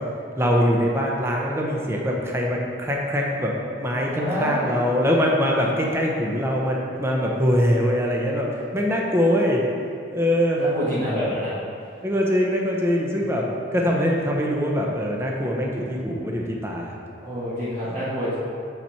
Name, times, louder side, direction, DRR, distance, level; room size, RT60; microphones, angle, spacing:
voice 1, 0.4-3.5 3.8-9.6 10.1-10.6 12.0-13.4 13.7-16.9, equal, 15° right, -1 dB, 0.7 m, -23 dB
voice 2, 4.0-4.9 10.6-11.5 13.2-13.3 17.2-18.4, equal, 40° right, -10 dB, 1.4 m, -27 dB
6.9 x 5.6 x 4.4 m, 2.7 s
head